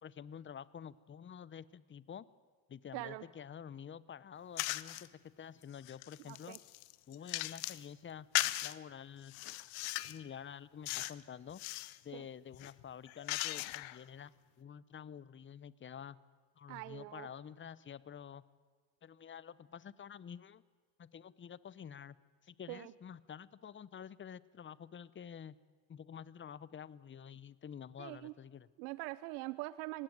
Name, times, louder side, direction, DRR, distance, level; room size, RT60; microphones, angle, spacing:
voice 1, 0.0-2.3 2.7-6.6 7.1-8.3 8.6-9.3 10.0-11.6 12.0-14.3 14.6-16.2 16.6-18.4 19.0-20.6 21.0-22.2 22.4-25.6 25.9-28.7, left 8 dB, 25° left, 20 dB, 0.7 m, -49 dB
voice 2, 2.9-3.2 6.3-6.6 12.1-12.2 16.7-17.3 22.7-22.9 28.0-28.3 28.8-30.0, right 20 dB, 85° right, 17 dB, 0.7 m, -43 dB
sound 1, 4.6-5.1 5.6-7.9 8.3-8.8 9.3-10.2 10.9-11.2 11.5-12.0 12.5-14.0, left 20 dB, 70° left, 0.9 m, -38 dB
19.0 x 16.5 x 9.3 m, 1.5 s
supercardioid pair, 85°, 50 cm